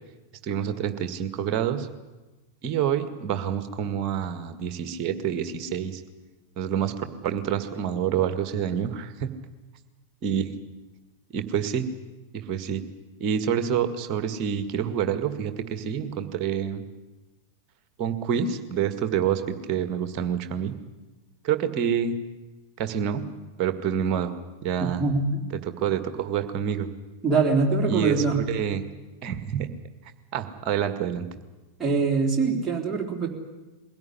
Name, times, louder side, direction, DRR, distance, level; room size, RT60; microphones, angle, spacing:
voice 1, 0.4-1.9 2.6-6.0 6.6-9.3 10.2-10.5 11.3-11.9 12.3-12.8 13.2-16.8 18.0-20.7 21.4-22.2 22.8-23.2 23.6-25.0 25.6-26.9 27.9-28.8 29.2-29.7 30.3-31.3, right 8 dB, 40° right, 9 dB, 1.9 m, -27 dB
voice 2, 25.0-25.5 27.2-28.4 31.8-33.3, right 4 dB, 10° right, -1 dB, 3.7 m, -23 dB
22.0 x 16.5 x 9.9 m, 1.2 s
figure-of-eight pair, 90°, 0 cm